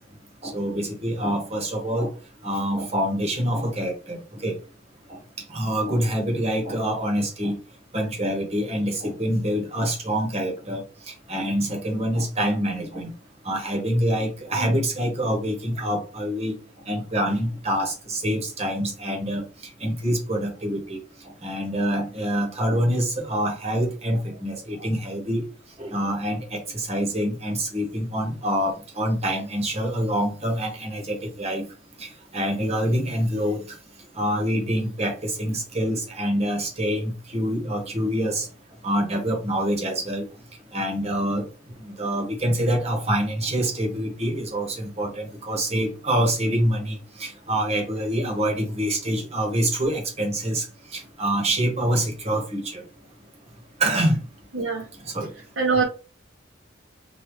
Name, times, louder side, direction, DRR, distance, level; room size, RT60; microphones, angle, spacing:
voice 1, 0.4-2.1 2.4-4.5 5.5-7.6 7.9-10.8 11.3-13.1 13.4-16.5 16.9-19.4 19.8-21.0 21.4-25.4 25.8-31.6 32.0-32.1 32.3-33.6 34.2-38.5 38.8-40.2 40.7-41.4 42.0-50.6 50.9-52.8 53.8-54.2 55.1-55.3, equal, 35° right, 1.0 m, -26 dB
voice 2, 54.5-54.8 55.6-55.8, right 4 dB, 75° right, 0.7 m, -23 dB
3.6 x 2.3 x 3.0 m
head